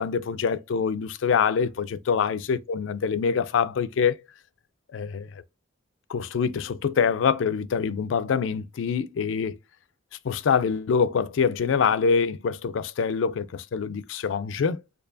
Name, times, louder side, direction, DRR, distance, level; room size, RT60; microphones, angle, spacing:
voice 1, 0.0-4.2 4.9-5.3 6.1-9.6 10.2-14.8, left 6 dB, 75° left, 0.4 m, -25 dB
4.5 x 2.7 x 2.5 m
head